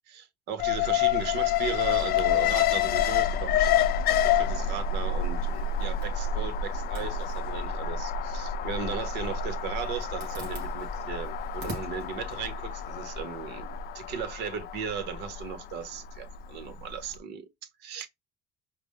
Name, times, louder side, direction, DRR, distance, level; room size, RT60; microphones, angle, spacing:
voice 1, 0.1-17.5 17.8-18.1, right 7 dB, 90° right, 0.9 m, -37 dB
Alarm, 0.6-16.7 17.0-17.1, left 7 dB, 65° left, 0.5 m, -28 dB
Zipper (clothing), 5.3-13.5, right 3 dB, 70° right, 2.9 m, -48 dB
5.0 x 2.0 x 3.5 m
cardioid pair, 110°, 17 cm